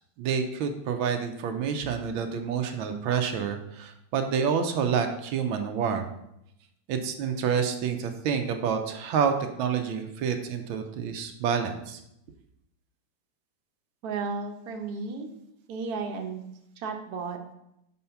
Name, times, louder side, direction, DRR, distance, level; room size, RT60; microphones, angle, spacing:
voice 1, 0.2-6.1 6.9-12.0, right 7 dB, 80° right, 6 dB, 1.4 m, -28 dB
voice 2, 14.0-15.3 15.7-16.4 16.8-17.4, right 4 dB, 60° right, 3 dB, 1.2 m, -33 dB
5.5 x 4.2 x 5.7 m, 0.81 s
omnidirectional pair, 2.2 m